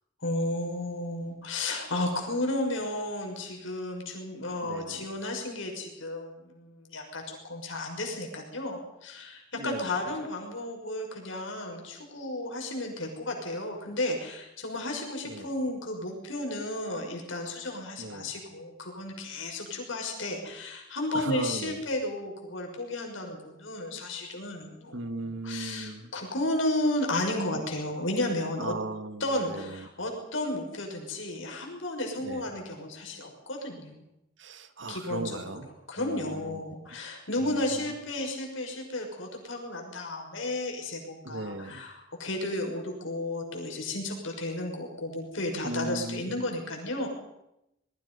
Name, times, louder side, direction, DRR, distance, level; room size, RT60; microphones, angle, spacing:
voice 1, 0.2-28.7 29.2-34.0 34.9-35.4 35.9-47.1, left 1 dB, 85° left, 1 dB, 6.1 m, -33 dB
voice 2, 4.6-5.0 9.5-9.9 15.2-15.5 18.0-18.3 21.1-21.8 24.9-26.1 28.6-29.9 32.2-32.5 34.4-35.7 36.0-36.6 37.4-37.8 41.2-41.8 45.6-46.4, right 2 dB, 70° right, 9 dB, 1.7 m, -37 dB
26.5 x 21.0 x 5.6 m, 0.86 s
head